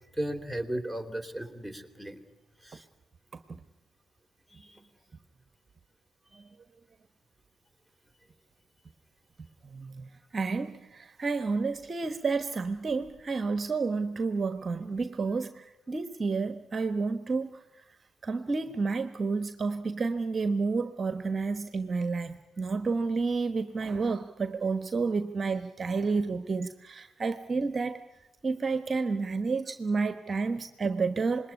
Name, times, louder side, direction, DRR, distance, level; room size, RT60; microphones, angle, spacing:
voice 1, 0.1-2.2 2.6-2.8 4.5-4.8, right 1 dB, 5° left, 9 dB, 3.2 m, -35 dB
voice 2, 9.6-17.5 18.2-28.0 28.4-31.5, right 4 dB, 35° right, 11 dB, 1.2 m, -30 dB
26.5 x 20.5 x 9.9 m, 0.97 s
figure-of-eight pair, 50°, 0 cm